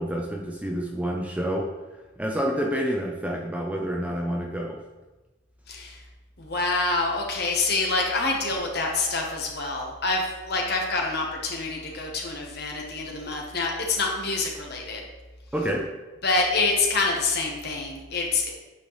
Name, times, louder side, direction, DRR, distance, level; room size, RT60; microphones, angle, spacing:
voice 1, 0.0-1.7 2.2-4.8 15.5-15.9, equal, 5° right, 0 dB, 0.5 m, -28 dB
voice 2, 5.7-6.0 6.4-15.0 16.2-18.5, left 3 dB, 50° left, 0 dB, 1.1 m, -26 dB
8.5 x 4.4 x 3.2 m, 1.1 s
head